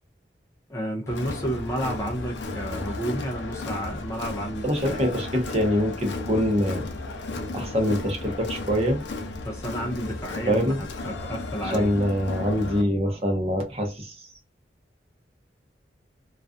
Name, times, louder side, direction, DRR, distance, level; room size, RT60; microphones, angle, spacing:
voice 1, 0.7-5.1 9.4-11.9, right 1 dB, 15° left, 0.4 m, -31 dB
Crowd, 1.1-12.8, left 2 dB, 90° left, 0.5 m, -34 dB
voice 2, 4.6-6.8 7.5-9.0 10.5-10.8 11.6-14.3, equal, 35° right, 0.7 m, -24 dB
2.3 x 2.3 x 2.4 m
head